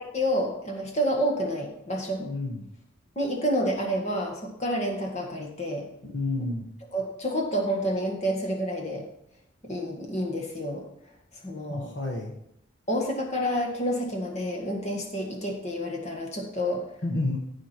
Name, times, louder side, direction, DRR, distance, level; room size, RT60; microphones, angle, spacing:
voice 1, 0.1-2.3 3.2-5.9 6.9-9.1 9.6-10.8 11.4-11.9 12.9-16.9, equal, 35° left, 0 dB, 1.8 m, -29 dB
voice 2, 2.1-2.7 6.0-6.7 11.7-12.3 17.0-17.4, left 2 dB, 60° left, 0 dB, 1.2 m, -30 dB
14.5 x 5.0 x 4.5 m, 0.77 s
head